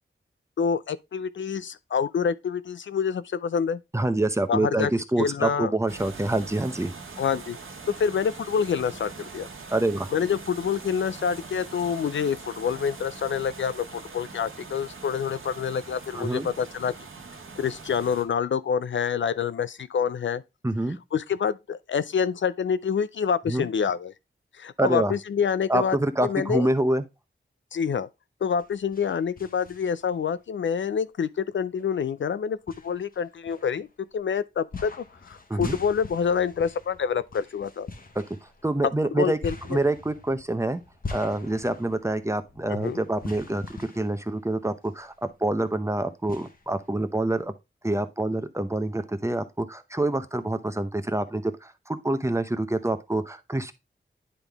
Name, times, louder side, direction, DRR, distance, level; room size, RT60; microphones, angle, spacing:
voice 1, 0.6-3.8 4.5-4.9 5.2-5.7 7.2-7.6 8.0-9.5 10.1-16.9 17.6-20.4 21.1-24.1 24.6-26.0 26.2-26.7 27.7-28.1 28.4-32.6 32.8-33.9 34.1-37.9 39.1-39.8 42.7-43.0, left 7 dB, 65° left, 0.4 m, -27 dB
voice 2, 3.9-6.9 9.7-10.1 16.1-16.5 20.6-21.0 23.5-23.7 24.8-25.1 25.7-27.0 35.5-35.8 38.1-38.2 38.6-39.4 39.7-40.8 41.1-43.6 43.9-47.5 47.8-53.7, right 1 dB, 15° right, 0.7 m, -26 dB
sound 1, 5.9-18.2, right 4 dB, 80° right, 1.4 m, -42 dB
sound 2, 28.5-30.2 30.7-30.8 31.8-31.9 32.7-34.1 34.7-45.1 45.4-45.5 46.3-47.4, left 3 dB, 45° left, 1.2 m, -42 dB
10.0 x 3.7 x 3.4 m
wide cardioid pair, 80°, 21 cm